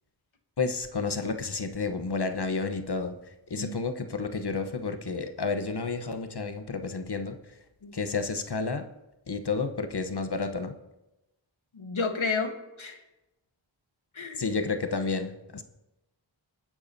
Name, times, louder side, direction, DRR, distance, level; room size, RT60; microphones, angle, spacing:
voice 1, 0.6-7.6 7.9-8.9 9.3-10.7 14.3-15.6, left 4 dB, 55° left, 8 dB, 1.0 m, -31 dB
voice 2, 7.8-8.2 11.7-13.0 14.1-14.4, left 4 dB, 80° left, 5 dB, 1.4 m, -32 dB
27.5 x 9.6 x 2.7 m, 0.99 s
wide cardioid pair, 50°, 48 cm